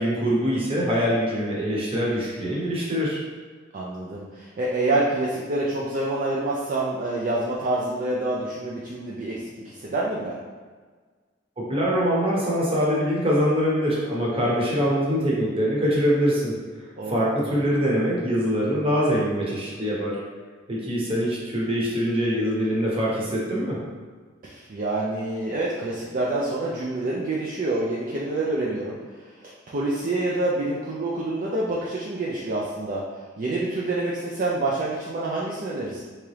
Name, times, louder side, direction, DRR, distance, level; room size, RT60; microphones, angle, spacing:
voice 1, 0.0-3.2 11.6-16.5 17.1-20.2 20.7-23.8, equal, 30° right, -5 dB, 0.9 m, -23 dB
voice 2, 3.7-10.4 14.4-14.7 17.0-17.5 24.4-36.0, right 2 dB, 45° right, -5 dB, 0.4 m, -27 dB
3.5 x 2.9 x 3.2 m, 1.5 s
head